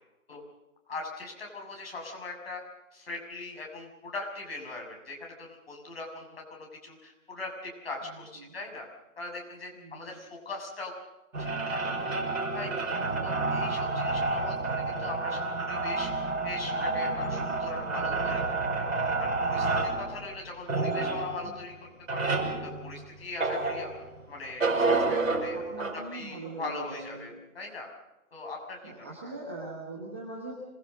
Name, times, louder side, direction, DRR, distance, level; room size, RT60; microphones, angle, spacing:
voice 1, 0.9-2.6 2.9-8.8 9.2-10.9 11.4-11.8 12.5-12.9 13.2-18.4 18.7-21.7 22.1-23.9 24.3-25.6 26.1-27.9 28.3-29.3, left 3 dB, 45° left, 0 dB, 6.8 m, -41 dB
voice 2, 8.0-8.5 9.7-10.2 13.0-13.5 21.4-21.6 25.5-27.4 28.8-30.5, right 2 dB, 10° right, -4 dB, 1.1 m, -42 dB
sound 1, 11.3-24.2 24.6-25.9, right 3 dB, 60° right, 5.9 m, -29 dB
26.5 x 20.5 x 6.5 m, 0.97 s
hypercardioid pair, 170°, 43 cm